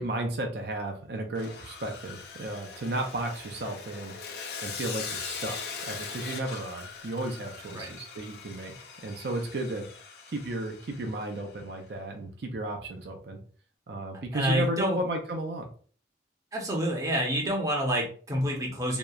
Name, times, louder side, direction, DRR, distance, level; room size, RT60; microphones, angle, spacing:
voice 1, 0.0-4.1 4.6-8.7 9.0-9.9 10.3-13.4 13.9-15.7, right 1 dB, 60° right, 3 dB, 0.4 m, -34 dB
Sawing, 1.4-11.6, left 5 dB, 60° left, 0.4 m, -41 dB
voice 2, 14.3-15.0 16.5-19.0, equal, 20° right, -1 dB, 0.6 m, -28 dB
2.8 x 2.1 x 2.3 m, 0.42 s
head